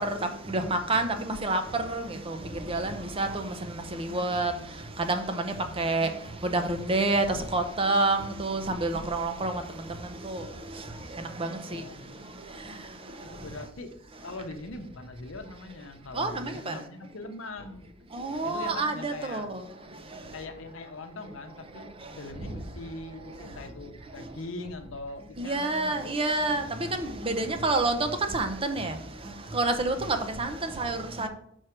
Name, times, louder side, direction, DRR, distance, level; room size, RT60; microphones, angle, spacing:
voice 1, 0.5-1.6 1.9-2.0 2.7-3.3 4.1-4.5 5.1-5.2 5.8-6.1 6.5-7.2 7.5-9.5 10.3-10.4 16.2-16.7 18.2-19.4 25.4-26.6 27.3-28.0 28.3-28.9 29.5-29.9 30.4-30.5 30.8-31.3, right 2 dB, 25° right, 6 dB, 0.6 m, -27 dB
voice 2, 11.7-12.4 13.2-13.9 14.2-17.9 18.4-19.5 20.3-26.2 26.8-27.0 27.5-27.7, left 2 dB, 70° left, 6 dB, 0.9 m, -41 dB
6.2 x 4.6 x 4.5 m, 0.72 s
head